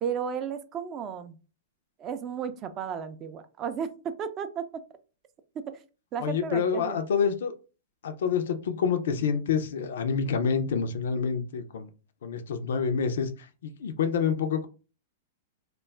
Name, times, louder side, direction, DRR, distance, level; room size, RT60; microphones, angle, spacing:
voice 1, 0.0-1.4 2.0-4.8 5.5-5.8 6.1-7.0, right 7 dB, 30° right, 0.4 m, -34 dB
voice 2, 6.2-7.5 8.0-11.9 12.2-14.7, left 6 dB, 70° left, 0.4 m, -27 dB
2.2 x 2.1 x 3.3 m
hypercardioid pair, 115°, 0 cm